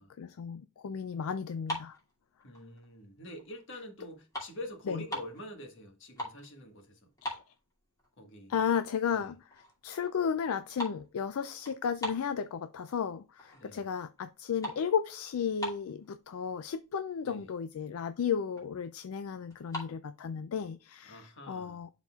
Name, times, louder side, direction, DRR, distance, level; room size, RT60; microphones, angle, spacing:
voice 1, 0.0-2.0 4.9-5.0 7.2-7.4 8.5-21.9, left 7 dB, 75° left, 0.4 m, -34 dB
sound 1, 1.5-2.9 3.4-3.7 4.0-5.4 5.9-6.5 6.8-6.9 7.2-8.1 8.5-8.6 9.2-9.3 9.5-9.9 10.1-12.9 13.4-13.8 14.1-16.1 16.8-16.9 17.1-17.3 17.7-17.8 18.1-18.7 19.5-19.9, equal, 15° left, 2.4 m, -41 dB
voice 2, 2.4-7.1 8.2-8.5 9.1-9.3 13.5-13.9 17.2-17.5 21.0-21.8, left 1 dB, 55° left, 1.6 m, -46 dB
11.5 x 4.0 x 2.3 m
head